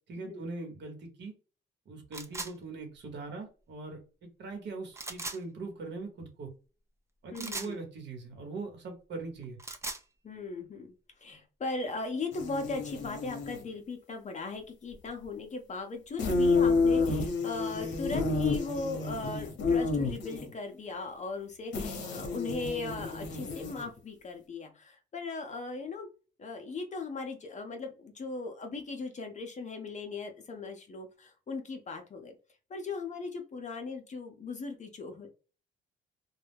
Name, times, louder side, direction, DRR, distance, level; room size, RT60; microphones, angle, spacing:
voice 1, 0.1-1.3 1.9-6.5 7.2-9.6, right 3 dB, 60° right, 3 dB, 1.0 m, -41 dB
sound 1, 2.1-2.5 4.9-5.4 7.3-7.7 9.4-10.0, right 2 dB, 15° right, 0.4 m, -38 dB
voice 2, 7.3-7.8 10.2-10.9 11.2-26.1 26.4-32.4 32.7-35.3, left 3 dB, 35° left, 4 dB, 0.6 m, -38 dB
sound 2, 12.3-13.6 16.2-20.5 21.7-24.0, left 3 dB, 65° left, 0.8 m, -30 dB
2.2 x 2.0 x 3.3 m, 0.35 s
cardioid pair, 90°, 20 cm